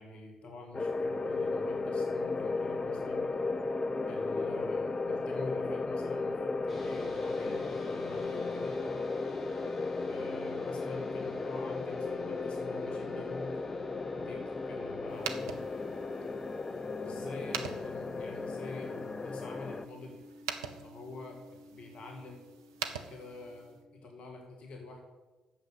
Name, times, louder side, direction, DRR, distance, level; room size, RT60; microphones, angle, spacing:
voice 1, 0.0-3.3 4.1-8.8 10.0-13.6 14.2-14.4 14.7-15.7 17.0-20.2 20.7-21.4 21.7-22.4 22.8-25.0, left 2 dB, 50° left, 2 dB, 1.8 m, -47 dB
sound 1, 0.7-19.9, left 3 dB, 30° left, 0.6 m, -35 dB
sound 2, 6.7-24.1, equal, 5° left, 3.9 m, -50 dB
sound 3, 15.1-23.8, right 7 dB, 75° right, 0.6 m, -44 dB
9.1 x 7.1 x 8.0 m, 1.2 s
figure-of-eight pair, 45°, 2 cm